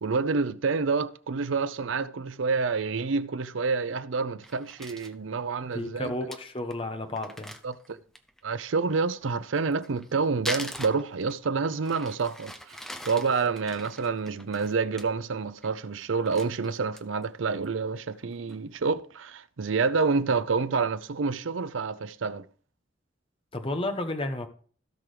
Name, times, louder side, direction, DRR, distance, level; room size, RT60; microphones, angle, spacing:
voice 1, 0.0-6.1 7.6-8.0 8.4-12.8 13.1-22.5, right 4 dB, 90° right, 0.6 m, -28 dB
Crumpling crinkling, 4.4-5.2 5.7-5.8 6.0-6.1 6.3-6.4 6.7-6.8 7.2-8.4 9.6-11.5 11.8-15.0 15.4-15.7 16.0-17.2 17.6-17.7 18.1-18.6, equal, ahead, 0.7 m, -41 dB
voice 2, 5.7-7.5 23.5-24.5, left 1 dB, 30° left, 1.1 m, -32 dB
16.5 x 6.1 x 3.3 m
head